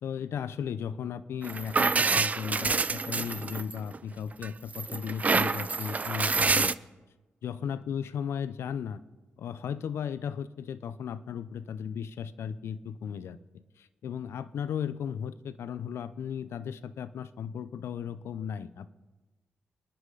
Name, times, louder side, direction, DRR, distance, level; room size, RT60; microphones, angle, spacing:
voice 1, 0.0-6.8 7.4-9.0 9.4-13.4 13.8-18.9, left 8 dB, 80° left, 15 dB, 0.6 m, -35 dB
sound 1, 1.4-4.0 4.4-6.7, right 4 dB, 35° right, 0.4 m, -27 dB
27.0 x 9.6 x 3.9 m, 1.2 s
cardioid pair, 65°, 4 cm